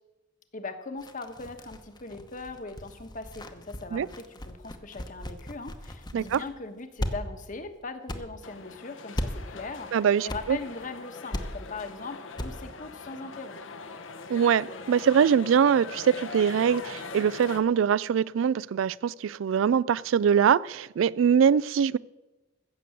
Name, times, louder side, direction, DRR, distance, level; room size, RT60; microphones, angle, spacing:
voice 1, 0.5-13.7, left 3 dB, 40° left, 1.2 m, -40 dB
sound 1, 1.0-6.6 7.0-7.1 7.5-7.6 8.1-8.2 9.2-9.3 10.2-10.4 10.7-10.8 11.3-11.5 11.9-12.0 12.4-12.5 12.8-12.9, left 1 dB, 20° left, 0.9 m, -36 dB
sound 2, 8.4-17.6, left 4 dB, 75° left, 1.0 m, -42 dB
voice 2, 9.9-10.6 14.3-22.0, right 7 dB, 80° right, 0.3 m, -23 dB
15.0 x 6.9 x 7.7 m
head